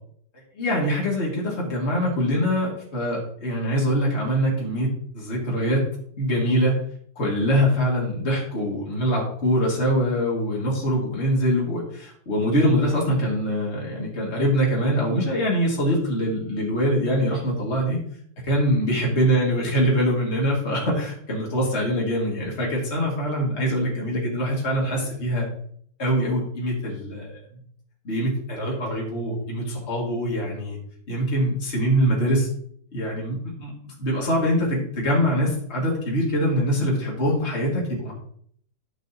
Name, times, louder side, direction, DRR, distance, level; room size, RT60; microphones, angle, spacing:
voice 1, 0.5-5.8 6.2-6.8 7.2-18.0 18.4-25.4 26.0-27.4 28.0-30.8 31.1-32.5 32.9-38.1, equal, 35° left, -4 dB, 2.7 m, -23 dB
11.0 x 7.1 x 3.0 m, 0.62 s
omnidirectional pair, 2.1 m